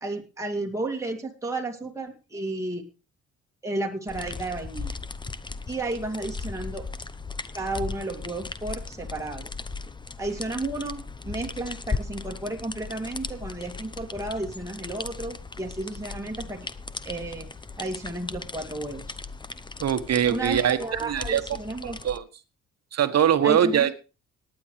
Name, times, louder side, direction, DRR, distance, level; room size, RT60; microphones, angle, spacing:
voice 1, 0.0-2.8 3.6-5.0 5.7-6.8 7.5-9.4 10.2-16.7 17.0-17.5 17.8-19.2 20.3-22.0 23.4-23.9, right 2 dB, 10° right, 1 dB, 2.4 m, -32 dB
sound 1, 4.1-22.2, left 4 dB, 15° left, 0.8 m, -37 dB
voice 2, 19.8-20.8 21.0-21.4 22.0-22.2 22.9-23.9, right 9 dB, 55° right, 10 dB, 1.3 m, -22 dB
18.5 x 10.0 x 3.3 m, 0.32 s
cardioid pair, 90°, 30 cm